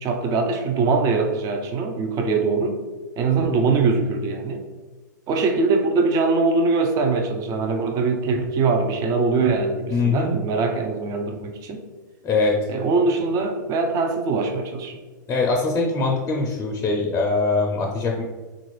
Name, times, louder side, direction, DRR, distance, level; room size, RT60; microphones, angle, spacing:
voice 1, 0.0-2.8 3.2-4.6 5.3-11.8 12.7-15.0, right 4 dB, 35° right, 4 dB, 0.5 m, -22 dB
voice 2, 9.9-10.4 12.2-12.6 15.3-18.2, left 3 dB, 25° left, 0 dB, 0.5 m, -22 dB
3.8 x 2.5 x 3.1 m, 1.3 s
hypercardioid pair, 115°, 10 cm